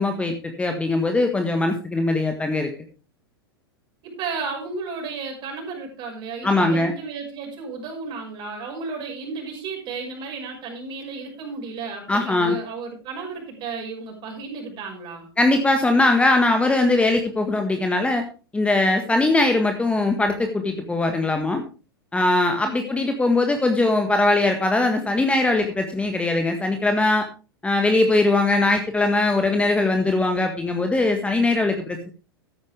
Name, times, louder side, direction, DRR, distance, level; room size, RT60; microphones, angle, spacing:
voice 1, 0.0-2.7 6.4-6.9 12.1-12.6 15.4-18.2 18.5-21.6 22.1-27.3 27.6-32.1, left 2 dB, 10° left, 5 dB, 1.6 m, -21 dB
voice 2, 4.0-15.3 22.6-22.8, right 4 dB, 40° right, 2 dB, 6.0 m, -33 dB
13.5 x 10.5 x 3.4 m, 0.34 s
figure-of-eight pair, 95°, 13 cm